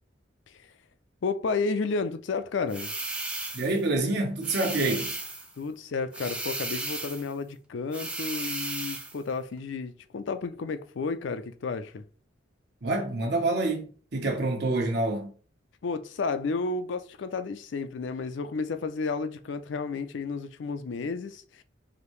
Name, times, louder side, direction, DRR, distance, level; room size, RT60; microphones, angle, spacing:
voice 1, 1.2-2.9 5.6-12.0 15.8-21.6, left 4 dB, 65° left, 0.4 m, -32 dB
sound 1, 2.7-3.8 4.4-5.5 6.1-7.3 7.9-9.2, right 2 dB, 5° right, 0.5 m, -35 dB
voice 2, 3.5-5.1 12.8-15.3, right 2 dB, 60° right, 1.0 m, -27 dB
4.9 x 2.7 x 3.1 m
head